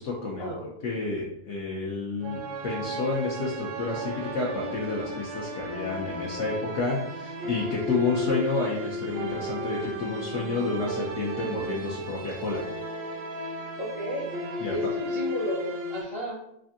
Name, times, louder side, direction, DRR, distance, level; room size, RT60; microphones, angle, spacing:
voice 1, 0.0-12.6 14.6-14.7, left 3 dB, 70° left, -3 dB, 0.9 m, -30 dB
sound 1, 2.2-16.0, left 1 dB, 80° right, 0.9 m, -34 dB
voice 2, 13.8-14.3 14.7-16.4, right 1 dB, 40° left, -5 dB, 0.4 m, -33 dB
3.3 x 2.5 x 2.5 m, 0.79 s
omnidirectional pair, 1.3 m